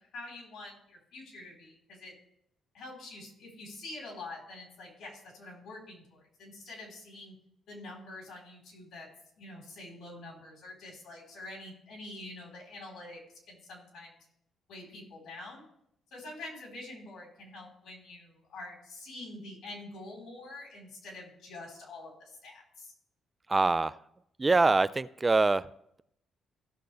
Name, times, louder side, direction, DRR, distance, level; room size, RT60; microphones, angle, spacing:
voice 1, 0.1-2.1 2.7-7.3 7.7-9.1 9.4-13.2 13.5-14.2 14.7-15.6 16.1-22.9, left 2 dB, 80° left, -1 dB, 4.2 m, -46 dB
voice 2, 23.5-24.0 24.4-25.7, right 3 dB, 20° right, 16 dB, 0.3 m, -24 dB
16.5 x 6.5 x 3.4 m, 0.76 s
cardioid pair, 90°, 0 cm